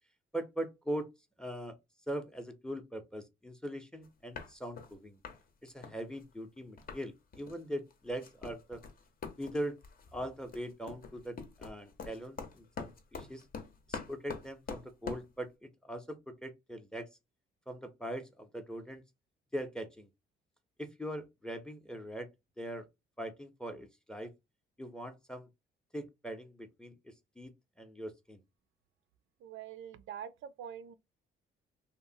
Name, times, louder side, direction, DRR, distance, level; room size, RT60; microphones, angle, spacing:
voice 1, 0.3-1.1 1.4-1.8 2.1-5.2 5.6-8.8 9.4-9.8 10.1-13.4 13.9-17.1 17.7-19.0 19.5-20.1 20.8-22.3 22.6-22.8 23.2-24.3 24.8-25.5 25.9-27.5 27.8-28.4, right 1 dB, 5° left, 0.5 m, -41 dB
sound 1, 4.0-4.1 4.3-4.9 5.2-5.4 5.7-7.0 7.3-7.6 7.9-15.3, left 5 dB, 45° left, 0.7 m, -45 dB
voice 2, 29.4-30.9, right 9 dB, 80° right, 0.4 m, -45 dB
2.8 x 2.0 x 2.6 m
cardioid pair, 90°, 20 cm